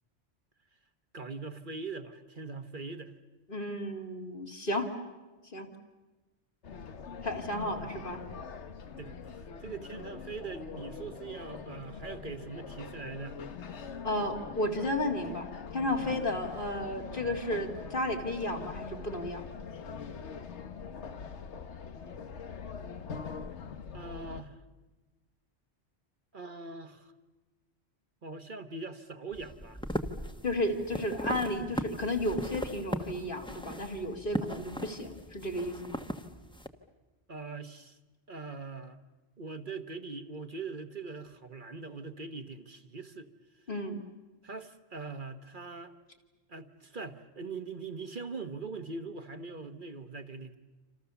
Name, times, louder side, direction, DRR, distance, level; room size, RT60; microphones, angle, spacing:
voice 1, 1.1-3.1 7.6-8.0 9.0-9.1 9.6-13.4 16.0-16.2 23.9-24.6 26.3-27.1 28.2-29.8 37.3-38.0 38.3-39.0 39.4-43.3 44.4-45.9 46.5-50.6, right 4 dB, 50° right, 7 dB, 1.3 m, -42 dB
voice 2, 3.5-4.9 5.5-5.7 7.2-8.2 14.0-19.5 30.4-36.0 43.7-44.1, left 1 dB, 50° left, 2 dB, 2.7 m, -33 dB
sound 1, 6.6-24.4, left 6 dB, 85° left, 1.5 m, -43 dB
sound 2, 29.3-36.7, equal, 5° left, 1.2 m, -38 dB
27.5 x 27.0 x 7.0 m, 1.2 s
omnidirectional pair, 1.1 m